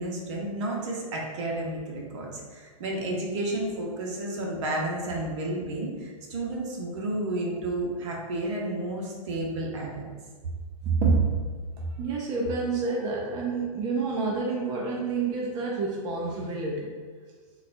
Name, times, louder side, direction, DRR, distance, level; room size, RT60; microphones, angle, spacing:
voice 1, 0.0-10.1, right 1 dB, 55° right, -2 dB, 0.9 m, -31 dB
voice 2, 10.8-11.5 11.8-16.9, right 4 dB, 25° right, -2 dB, 0.4 m, -28 dB
3.8 x 2.3 x 2.6 m, 1.6 s
hypercardioid pair, 125°, 18 cm